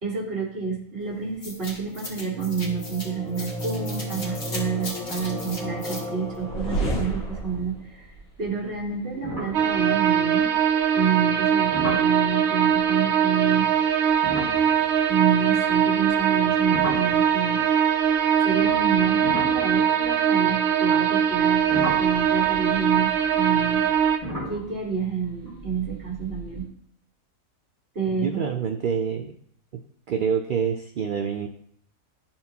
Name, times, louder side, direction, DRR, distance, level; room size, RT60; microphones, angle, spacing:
voice 1, 0.0-8.1 8.4-10.5 10.9-13.7 15.1-17.7 18.4-23.9 24.5-26.7 28.0-28.4, right 6 dB, 45° right, -3 dB, 1.9 m, -29 dB
sound 1, 1.4-7.8, equal, 70° left, 2.0 m, -31 dB
sound 2, 7.1-7.8 8.0-8.4 8.8-8.9 9.2-10.5 11.7-12.2 14.1-17.7 18.5-20.7 21.3-26.6, right 1 dB, 25° left, 2.4 m, -36 dB
sound 3, 9.5-24.2, right 8 dB, 60° right, 0.9 m, -21 dB
voice 2, 28.1-29.4 30.1-31.5, right 7 dB, 80° right, 5 dB, 0.4 m, -26 dB
11.5 x 4.4 x 2.8 m, 0.64 s
omnidirectional pair, 1.4 m